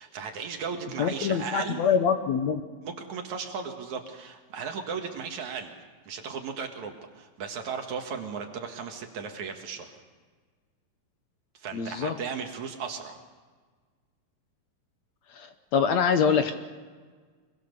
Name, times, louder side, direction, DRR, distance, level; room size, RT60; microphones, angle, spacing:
voice 1, 0.0-1.9 2.8-5.7 6.1-10.0 11.5-13.2, right 6 dB, 65° right, 4 dB, 3.0 m, -36 dB
voice 2, 1.0-2.6 11.7-12.2 15.3-16.5, left 7 dB, 65° left, 7 dB, 2.0 m, -25 dB
25.0 x 22.5 x 6.8 m, 1.5 s
omnidirectional pair, 3.8 m